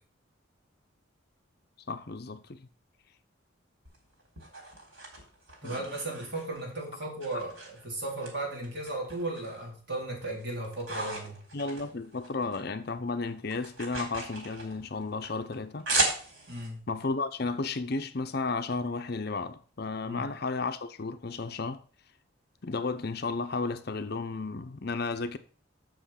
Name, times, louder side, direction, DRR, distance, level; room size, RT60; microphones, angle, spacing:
voice 1, 1.9-2.6 5.6-5.9 11.5-15.9 16.9-21.8 22.6-25.4, left 3 dB, 50° left, 0.6 m, -33 dB
sound 1, 3.8-6.7 7.2-8.3 8.6-9.6 10.0-12.6 12.9-16.7, right 2 dB, 85° right, 3.9 m, -36 dB
voice 2, 5.6-11.4 16.5-16.8 20.0-20.3, right 2 dB, 55° right, 3.9 m, -36 dB
7.8 x 6.8 x 5.7 m
head